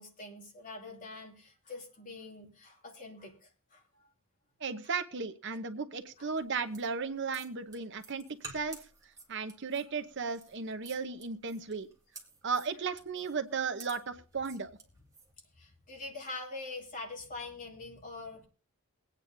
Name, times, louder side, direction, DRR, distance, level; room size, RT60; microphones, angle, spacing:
voice 1, 0.0-3.8 6.2-6.3 15.6-18.5, left 3 dB, 40° left, 0 dB, 2.8 m, -44 dB
voice 2, 4.6-8.9 9.3-11.9 12.4-14.8, right 5 dB, 55° right, 9 dB, 0.8 m, -35 dB
sound 1, 6.3-15.3, right 3 dB, 15° right, 1.9 m, -52 dB
22.5 x 9.0 x 2.6 m, 0.36 s
head